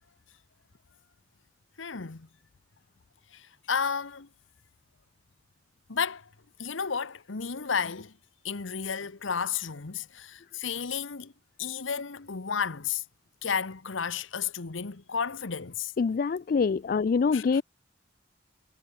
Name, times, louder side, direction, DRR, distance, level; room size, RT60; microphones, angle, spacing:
voice 1, 1.8-2.3 3.3-4.3 5.9-6.3 6.6-8.1 8.4-11.3 11.6-13.0 13.4-15.9 17.3-17.6, left 6 dB, 85° left, 1.1 m, -32 dB
voice 2, 16.0-17.6, left 5 dB, 45° left, 0.3 m, -25 dB
head